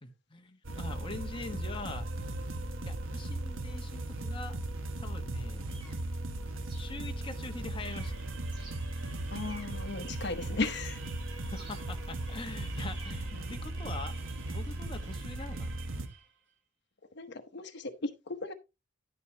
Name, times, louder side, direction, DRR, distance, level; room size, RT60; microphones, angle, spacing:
voice 1, 0.3-2.1 2.8-4.6 5.0-5.7 6.8-8.1 11.5-14.2 14.5-15.8, left 3 dB, 25° left, 1.2 m, -43 dB
sound 1, 0.6-16.1, right 1 dB, 80° right, 1.2 m, -37 dB
sound 2, 4.6-4.7 5.2-7.5 7.8-10.9 11.5-14.8, right 2 dB, 25° right, 7.2 m, -55 dB
sound 3, 7.8-16.4, right 4 dB, 65° right, 3.5 m, -51 dB
voice 2, 9.3-11.0 13.3-13.5 17.2-18.5, left 3 dB, 60° left, 1.0 m, -36 dB
11.0 x 9.3 x 2.8 m
head